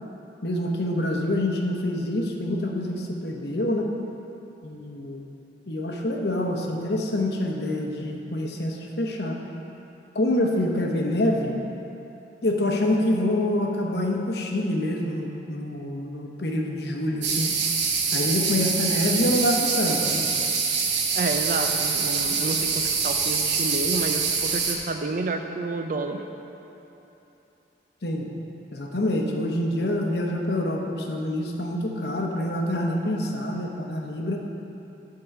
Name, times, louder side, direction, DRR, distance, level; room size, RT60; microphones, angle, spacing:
voice 1, 0.4-3.9 4.6-5.3 5.7-9.4 10.1-11.5 12.4-17.5 18.1-20.3 28.0-28.3 28.7-34.4, left 1 dB, 65° left, 1 dB, 0.9 m, -26 dB
sound 1, 17.2-24.8, right 5 dB, 80° right, 0.9 m, -25 dB
voice 2, 21.1-26.2, right 3 dB, 50° right, 5 dB, 0.5 m, -30 dB
10.5 x 3.8 x 6.6 m, 3.0 s
head